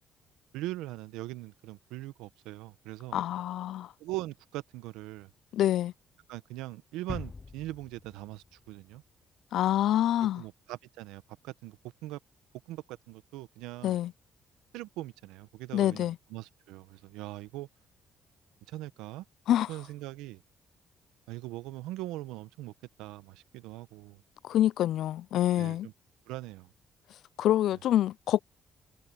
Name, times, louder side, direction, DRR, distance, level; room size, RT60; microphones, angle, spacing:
voice 1, 0.5-3.2 4.0-5.3 6.3-9.0 10.3-12.2 12.7-14.0 14.7-17.7 18.7-19.2 19.7-20.4 21.3-22.7 23.0-24.2 25.5-25.9 26.3-26.7, right 17 dB, 85° right, 1.1 m, -41 dB
voice 2, 3.1-3.9 5.5-5.9 9.5-10.4 13.8-14.1 15.7-16.2 19.5-19.7 24.4-25.9 27.4-28.4, left 12 dB, 75° left, 0.4 m, -26 dB
sound 1, 7.1-9.8, left 4 dB, 30° left, 0.6 m, -44 dB
supercardioid pair, 60°, 0 cm